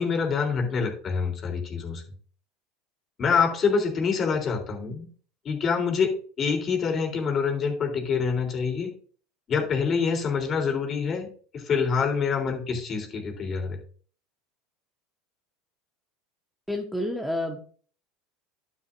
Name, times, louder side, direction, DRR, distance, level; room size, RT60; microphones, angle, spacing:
voice 1, 0.0-2.0 3.2-5.1 5.5-8.9 9.5-11.3 11.5-13.8, left 5 dB, 40° left, 2 dB, 3.5 m, -26 dB
voice 2, 16.7-17.6, left 1 dB, ahead, 0 dB, 1.4 m, -29 dB
11.5 x 7.5 x 2.6 m, 0.43 s
hypercardioid pair, 90°, 0 cm